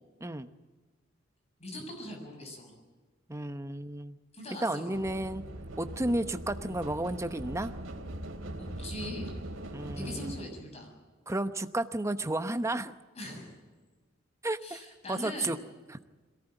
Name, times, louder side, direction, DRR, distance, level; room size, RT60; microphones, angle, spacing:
voice 1, 1.6-2.7 4.3-5.0 8.6-9.3 9.9-10.9 13.1-13.6 14.6-15.5, left 1 dB, 30° left, 3 dB, 6.8 m, -41 dB
voice 2, 3.3-4.2 4.6-5.4 5.8-7.7 9.7-10.3 11.3-13.0 14.4-14.8 15.1-15.6 15.9-16.0, right 1 dB, 15° right, 10 dB, 0.9 m, -32 dB
sound 1, 4.9-10.4, right 1 dB, 90° right, 3.3 m, -41 dB
22.5 x 18.0 x 9.1 m, 1.3 s
head